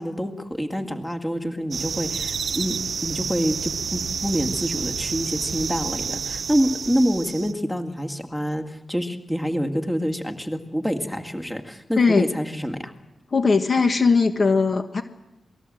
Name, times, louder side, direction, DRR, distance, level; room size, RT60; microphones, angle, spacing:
voice 1, 0.0-12.9, equal, 5° left, 5 dB, 2.1 m, -27 dB
sound 1, 1.7-7.5, right 6 dB, 55° right, 1.0 m, -29 dB
voice 2, 12.0-12.3 13.3-15.0, left 4 dB, 35° left, 6 dB, 1.4 m, -19 dB
27.5 x 20.0 x 7.7 m, 0.97 s
wide cardioid pair, 145°, 0 cm